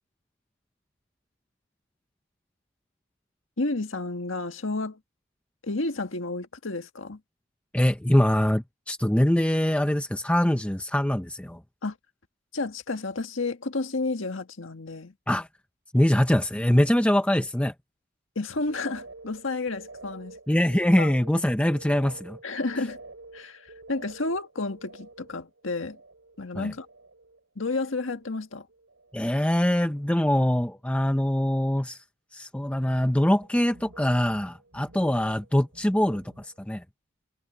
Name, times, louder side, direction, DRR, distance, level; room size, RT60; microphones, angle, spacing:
voice 1, 3.6-5.0 5.6-7.2 11.8-12.0 12.5-15.1 18.3-20.4 21.0-21.1 22.4-23.0 23.3-26.0 26.4-26.9 27.5-28.7, left 3 dB, 90° left, 1.7 m, -31 dB
voice 2, 7.7-11.6 15.3-15.5 15.9-17.7 20.5-22.4 26.5-26.7 29.1-32.0 32.3-36.8, left 1 dB, 5° left, 0.7 m, -23 dB
sound 1, 18.5-27.4 27.7-28.4 28.7-29.4 29.7-30.1 33.4-36.6, right 2 dB, 85° right, 5.2 m, -49 dB
head